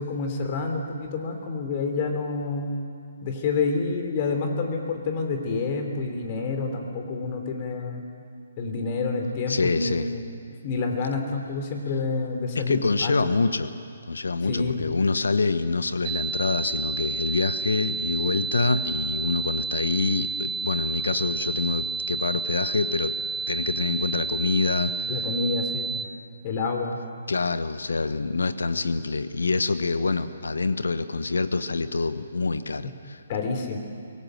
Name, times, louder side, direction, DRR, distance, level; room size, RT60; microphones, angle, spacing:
voice 1, 0.0-2.8 3.2-8.0 8.6-10.2 10.6-13.1 14.5-14.9 25.1-26.0 26.4-27.0 33.3-33.8, left 4 dB, 40° left, 4 dB, 3.2 m, -28 dB
voice 2, 9.5-10.1 12.5-13.7 14.1-23.1 23.5-25.2 27.3-33.2, left 3 dB, 75° left, 12 dB, 1.1 m, -26 dB
sound 1, 16.0-26.0, right 4 dB, 20° right, 0.5 m, -31 dB
23.5 x 18.5 x 7.9 m, 2.3 s
figure-of-eight pair, 140°, 0 cm